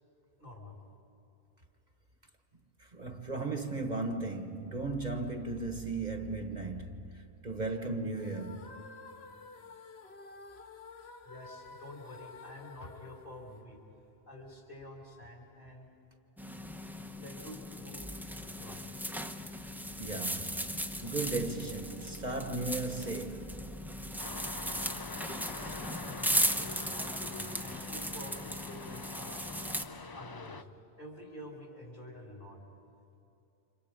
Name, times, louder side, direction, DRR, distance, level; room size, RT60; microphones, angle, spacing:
voice 1, 0.4-0.8 11.2-13.8 14.3-15.9 17.1-18.0 18.3-18.8 25.5-29.5 30.1-30.7 31.0-32.6, left 1 dB, 50° left, 5.1 m, -48 dB
voice 2, 2.8-8.8 20.0-23.7, right 3 dB, 45° right, 1.3 m, -36 dB
sound 1, 8.1-14.2, left 4 dB, 70° left, 1.3 m, -51 dB
sound 2, 16.4-29.8, equal, ahead, 0.8 m, -37 dB
sound 3, 24.2-30.6, left 4 dB, 35° left, 0.4 m, -45 dB
30.0 x 26.5 x 5.2 m
omnidirectional pair, 1.1 m